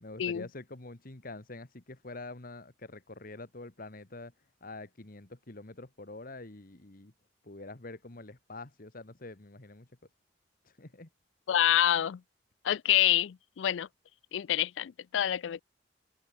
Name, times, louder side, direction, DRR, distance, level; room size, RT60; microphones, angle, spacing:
voice 1, 0.0-4.3 4.6-7.1 7.4-9.9 10.6-11.1, left 2 dB, 50° left, 1.7 m, -46 dB
voice 2, 11.5-12.2 12.6-13.9 14.3-15.6, left 11 dB, 85° left, 0.4 m, -27 dB
head